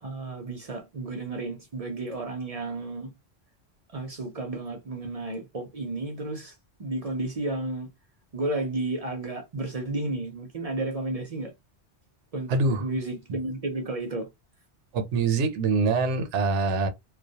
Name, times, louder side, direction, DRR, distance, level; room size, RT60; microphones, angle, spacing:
voice 1, 0.0-3.1 3.9-6.5 6.8-7.9 8.3-11.5 12.3-14.3, right 2 dB, 45° right, 0.5 m, -32 dB
voice 2, 12.5-12.9 14.9-16.9, right 3 dB, 85° right, 0.9 m, -24 dB
2.2 x 2.2 x 2.7 m
omnidirectional pair, 1.1 m